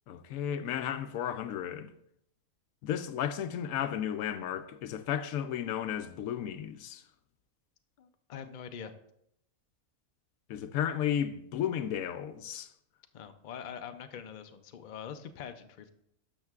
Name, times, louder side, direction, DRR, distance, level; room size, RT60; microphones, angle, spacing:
voice 1, 0.1-1.9 2.8-7.0 10.5-12.7, left 9 dB, 80° left, 1.0 m, -33 dB
voice 2, 8.0-8.9 13.1-15.9, left 7 dB, 55° left, 0.5 m, -44 dB
12.0 x 6.4 x 2.4 m
omnidirectional pair, 1.5 m